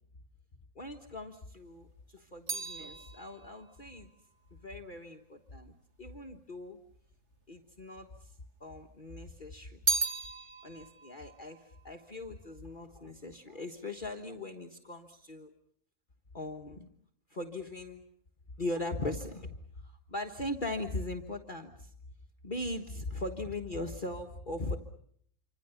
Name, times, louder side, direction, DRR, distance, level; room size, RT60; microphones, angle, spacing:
voice 1, 0.7-4.1 4.5-6.8 7.5-8.3 8.6-9.8 10.6-15.5 16.3-16.9 17.3-18.0 18.6-19.5 19.8-21.9 22.4-24.8, left 2 dB, 40° left, 4 dB, 1.6 m, -40 dB
sound 1, 1.5-5.9 6.7-7.5 7.8-8.9 9.3-12.8 13.1-13.6, right 3 dB, 55° right, 2.8 m, -38 dB
28.0 x 25.5 x 7.0 m, 0.65 s
omnidirectional pair, 1.4 m